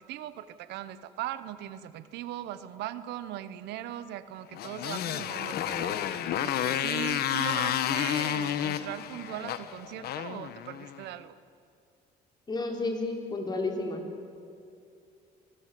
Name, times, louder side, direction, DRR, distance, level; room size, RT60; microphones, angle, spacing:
voice 1, 0.0-11.3, right 12 dB, 85° right, 13 dB, 1.1 m, -39 dB
Motorcycle, 4.5-11.1, left 10 dB, 70° left, 1.2 m, -31 dB
voice 2, 12.5-14.0, left 2 dB, 25° left, 2 dB, 4.2 m, -31 dB
26.0 x 21.0 x 7.7 m, 2.5 s
cardioid pair, 110°, 17 cm